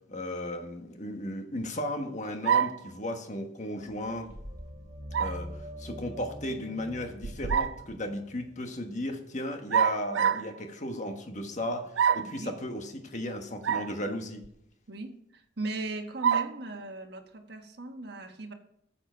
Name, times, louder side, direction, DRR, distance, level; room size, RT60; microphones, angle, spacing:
voice 1, 0.1-4.3 5.2-14.4, left 1 dB, 40° left, 1.4 m, -35 dB
sound 1, 2.4-2.9 5.1-5.4 7.2-7.8 9.7-10.5 12.0-12.4 13.6-13.9 14.4-14.5 16.2-16.6, right 8 dB, 75° right, 0.5 m, -26 dB
sound 2, 3.9-8.6, equal, 10° right, 4.0 m, -44 dB
voice 2, 12.2-12.5 14.9-18.5, right 2 dB, 60° right, 1.4 m, -38 dB
14.0 x 7.5 x 4.5 m
head